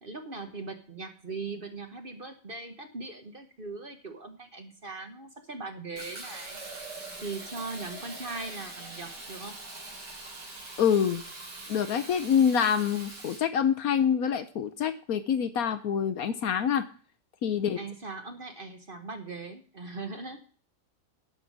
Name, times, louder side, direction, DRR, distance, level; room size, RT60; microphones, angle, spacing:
voice 1, 0.0-6.6 7.2-9.6 17.8-20.4, right 3 dB, 35° right, 7 dB, 1.1 m, -40 dB
Fill (with liquid), 6.0-13.4, right 2 dB, 80° right, 3.6 m, -43 dB
voice 2, 10.8-11.2 11.7-16.8 17.4-17.8, left 8 dB, 65° left, 11 dB, 1.1 m, -26 dB
11.5 x 5.3 x 7.4 m, 0.42 s
omnidirectional pair, 1.8 m